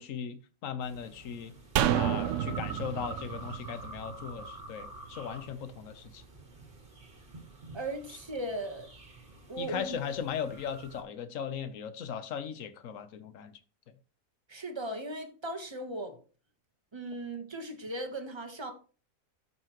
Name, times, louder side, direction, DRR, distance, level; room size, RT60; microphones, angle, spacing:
voice 1, 0.0-1.5 1.9-6.2 9.6-13.5, left 7 dB, 65° left, 1.2 m, -38 dB
sound 1, 0.8-11.0, right 2 dB, 35° right, 1.8 m, -48 dB
sound 2, 1.8-5.1 5.4-5.5, right 11 dB, 70° right, 0.8 m, -31 dB
voice 2, 7.7-8.9 9.5-10.0 14.5-16.2 16.9-18.7, right 1 dB, 20° right, 1.1 m, -37 dB
12.0 x 5.7 x 3.0 m
omnidirectional pair, 1.5 m